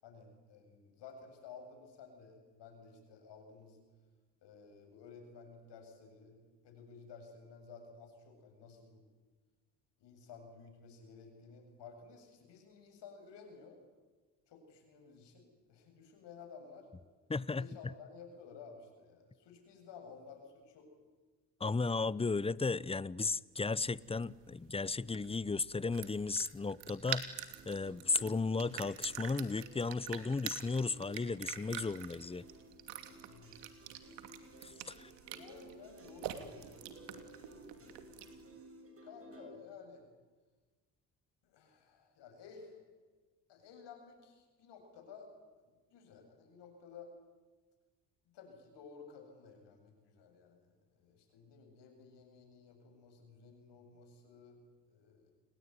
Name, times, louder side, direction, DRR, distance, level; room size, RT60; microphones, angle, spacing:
voice 1, 0.0-3.8 4.4-6.4 6.6-9.0 10.0-13.8 14.5-16.9 17.6-20.9 33.2-33.6 35.2-38.4 39.0-40.0 41.4-42.8 43.5-45.3 45.6-47.1 48.3-55.3, left 5 dB, 70° left, 5 dB, 7.9 m, -55 dB
voice 2, 17.3-17.9 21.6-27.4 27.6-32.4 34.6-35.1, left 3 dB, 15° left, 21 dB, 0.8 m, -35 dB
sound 1, 23.6-38.5, right 11 dB, 75° right, 2.8 m, -47 dB
sound 2, 27.1-39.6, right 2 dB, 30° right, 7.4 m, -57 dB
29.0 x 21.0 x 9.6 m, 1.3 s
supercardioid pair, 70°, 43 cm